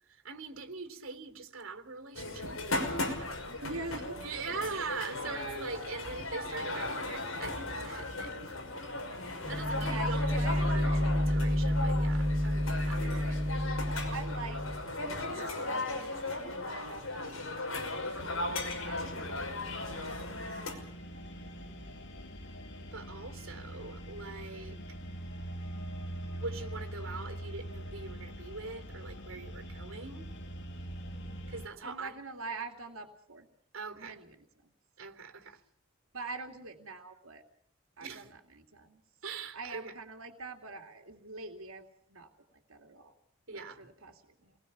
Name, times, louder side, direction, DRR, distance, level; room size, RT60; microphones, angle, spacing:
voice 1, 0.1-3.3 4.2-8.6 9.5-10.2 10.5-13.1 20.7-20.9 22.8-24.8 26.3-30.3 31.5-32.2 33.7-34.2 35.0-35.6 38.0-38.3 39.2-39.9 43.5-43.9, right 4 dB, 65° right, 3.5 m, -42 dB
sound 1, 2.1-20.7, left 2 dB, 80° left, 5.8 m, -37 dB
voice 2, 3.5-4.2 4.7-5.9 9.7-10.7 12.9-13.4 14.1-14.6 15.2-18.2 18.5-20.2 31.8-33.5 33.9-34.7 35.4-35.6 36.1-37.4 38.0-39.0 39.5-42.3 42.7-43.1 43.5-44.6, right 3 dB, 90° right, 2.7 m, -45 dB
sound 2, 9.4-14.8, equal, ahead, 4.4 m, -30 dB
sound 3, 18.2-31.7, right 1 dB, 60° left, 2.6 m, -43 dB
29.0 x 20.5 x 7.3 m
head